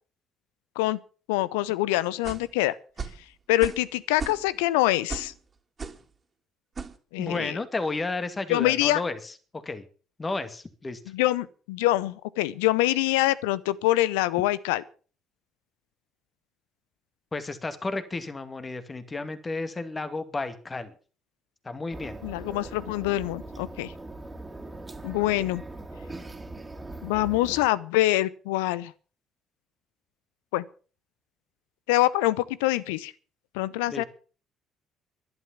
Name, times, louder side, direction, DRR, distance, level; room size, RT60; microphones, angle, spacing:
voice 1, 1.3-2.8 3.5-5.3 7.1-7.6 8.5-9.0 11.1-14.8 22.2-23.9 25.0-25.6 27.0-28.9 30.5-30.6 31.9-33.1 33.5-34.0, left 16 dB, 75° left, 0.7 m, -25 dB
sound 1, 2.2-2.5 3.0-3.2 3.6-3.9 4.1-4.6 5.1-5.4 5.8-6.0 6.8-7.0, right 5 dB, 35° right, 2.7 m, -36 dB
voice 2, 7.2-9.3 9.6-9.9 10.2-11.0 17.3-20.9 21.6-22.2 33.9-34.1, left 3 dB, 30° left, 2.4 m, -32 dB
sound 2, 21.9-27.7, right 2 dB, 20° right, 2.8 m, -41 dB
12.5 x 11.5 x 7.3 m
hypercardioid pair, 50°, 0 cm